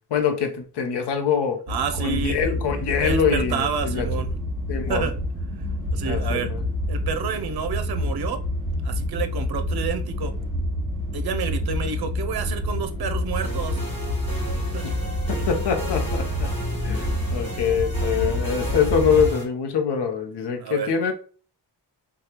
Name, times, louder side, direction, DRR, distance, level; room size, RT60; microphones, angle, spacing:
voice 1, 0.1-1.6 2.0-4.1 4.7-5.1 6.1-6.6 14.8-14.9 15.3-16.5 16.8-21.1, left 6 dB, 70° left, 0.7 m, -24 dB
sound 1, 1.7-19.3, left 1 dB, 25° right, 1.4 m, -28 dB
voice 2, 1.7-2.5 3.0-4.3 4.9-5.1 5.9-6.5 6.9-8.4 8.8-10.3 11.1-13.8 14.7-15.1 20.6-20.9, right 6 dB, 60° right, 0.6 m, -29 dB
sound 2, 13.4-19.5, right 1 dB, 15° left, 1.4 m, -35 dB
4.9 x 2.3 x 2.9 m
wide cardioid pair, 160°, 42 cm